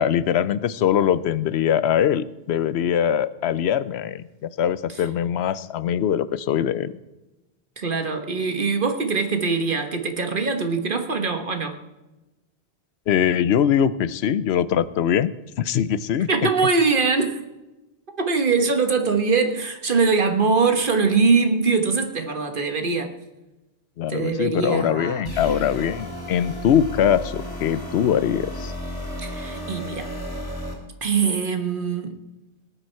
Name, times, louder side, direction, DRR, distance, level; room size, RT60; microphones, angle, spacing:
voice 1, 0.0-6.9 13.1-15.3 15.6-16.5 24.0-28.7, left 9 dB, 85° left, 16 dB, 0.9 m, -22 dB
voice 2, 7.8-11.7 16.3-17.4 18.2-23.1 24.1-25.2 29.2-30.1 31.0-32.2, right 4 dB, 55° right, 6 dB, 1.5 m, -22 dB
sound 1, 25.2-30.7, left 1 dB, 20° left, 2.9 m, -33 dB
19.0 x 9.0 x 4.5 m, 1.1 s
omnidirectional pair, 1.0 m